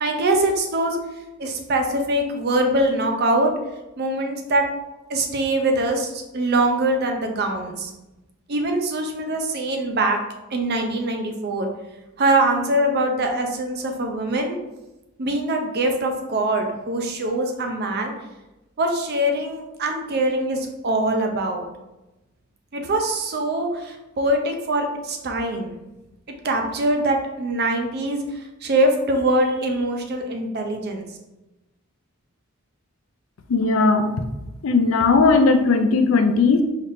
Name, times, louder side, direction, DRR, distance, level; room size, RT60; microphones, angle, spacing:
voice 1, 0.0-1.0 1.4-3.5 4.0-4.7 5.1-7.9 8.5-10.2 10.5-11.7 12.2-14.6 15.2-18.1 18.8-21.6 22.7-25.7 26.4-31.1, right 1 dB, 50° right, 4 dB, 0.6 m, -23 dB
voice 2, 33.5-34.2 34.6-36.6, left 4 dB, 70° left, 7 dB, 0.4 m, -17 dB
4.0 x 3.4 x 2.6 m, 0.99 s
head